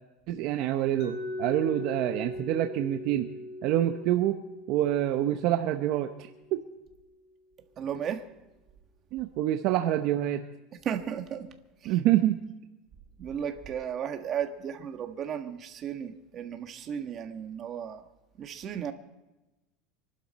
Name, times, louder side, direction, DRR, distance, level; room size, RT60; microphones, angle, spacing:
voice 1, 0.3-3.3 3.6-4.4 4.7-6.1 6.5-6.6 9.1-10.4 11.8-12.4, right 13 dB, 55° right, 6 dB, 0.9 m, -26 dB
Mallet percussion, 1.0-6.8, left 1 dB, 45° left, 5.3 m, -40 dB
voice 2, 7.8-8.3 10.8-11.5 11.8-11.9 13.2-18.0 18.4-18.9, right 8 dB, 35° right, 6 dB, 1.5 m, -34 dB
25.5 x 12.0 x 4.2 m, 1.0 s
supercardioid pair, 140°, 0 cm